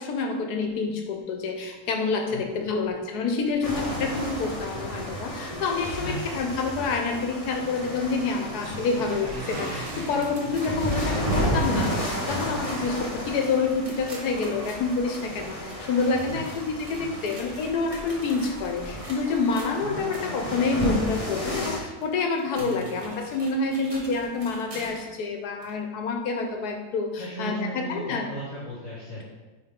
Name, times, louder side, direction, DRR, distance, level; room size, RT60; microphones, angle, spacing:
voice 1, 0.0-28.3, left 4 dB, 80° left, 4 dB, 1.2 m, -28 dB
sound 1, 1.9-2.0 2.5-18.4, right 2 dB, 60° right, 1.6 m, -42 dB
voice 2, 2.3-2.7 3.9-4.2 6.0-6.3 10.6-10.7 16.3-16.4 19.8-19.9 22.6-23.0 27.2-29.2, equal, 50° left, -7 dB, 1.6 m, -36 dB
sound 2, 3.6-21.8, equal, 30° left, 0.7 m, -33 dB
sound 3, 9.4-25.1 25.6-25.7 26.4-26.5 27.4-27.5, equal, 25° right, 1.0 m, -46 dB
9.3 x 3.4 x 3.6 m, 1.2 s
omnidirectional pair, 1.7 m